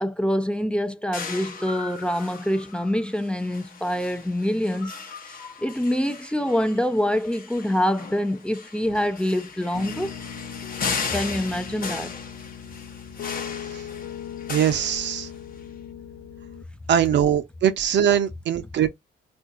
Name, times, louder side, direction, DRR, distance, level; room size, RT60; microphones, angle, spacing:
voice 1, 0.0-4.9 5.3-10.1 11.1-12.2, left 1 dB, 5° left, 0.4 m, -25 dB
sound 1, 1.1-15.6, left 5 dB, 45° left, 0.9 m, -37 dB
Piano, 9.7-16.6, left 8 dB, 80° left, 0.7 m, -38 dB
voice 2, 14.5-15.3 16.9-18.9, right 9 dB, 65° right, 0.7 m, -21 dB
3.7 x 2.6 x 2.5 m
cardioid pair, 90°, 20 cm